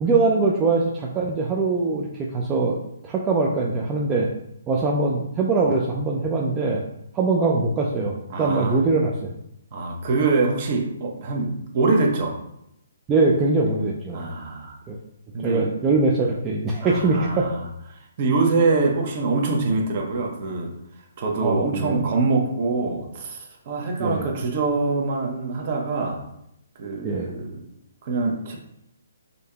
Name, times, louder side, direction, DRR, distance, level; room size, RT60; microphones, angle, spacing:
voice 1, 0.0-2.8 3.0-4.3 4.7-6.8 7.1-9.3 13.1-14.2 14.9-15.0 15.4-17.5 21.4-22.0 24.0-24.2 27.0-27.3, right 3 dB, 15° right, -2 dB, 0.4 m, -22 dB
voice 2, 8.3-8.8 9.7-12.4 14.1-14.8 15.3-15.6 16.8-17.6 17.9-20.7 21.2-26.3 26.8-27.6 28.0-28.6, right 3 dB, 40° right, 1 dB, 0.8 m, -24 dB
5.1 x 2.7 x 2.3 m, 0.78 s
hypercardioid pair, 155°, 0 cm